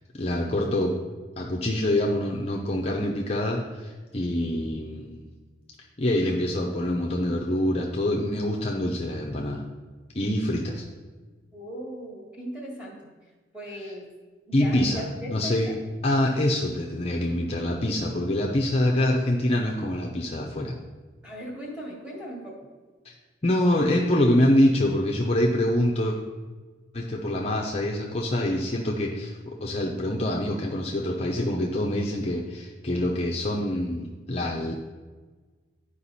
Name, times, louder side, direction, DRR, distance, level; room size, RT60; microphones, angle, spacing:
voice 1, 0.1-1.0 1.4-5.2 6.0-9.6 10.1-10.8 14.5-15.7 16.0-20.8 23.0-23.1 23.4-26.2 26.9-34.8, left 1 dB, 35° left, -1 dB, 0.6 m, -25 dB
voice 2, 11.5-13.1 13.5-14.1 14.5-15.8 21.2-22.6, equal, 5° right, -4 dB, 2.0 m, -38 dB
11.5 x 5.0 x 4.1 m, 1.4 s
head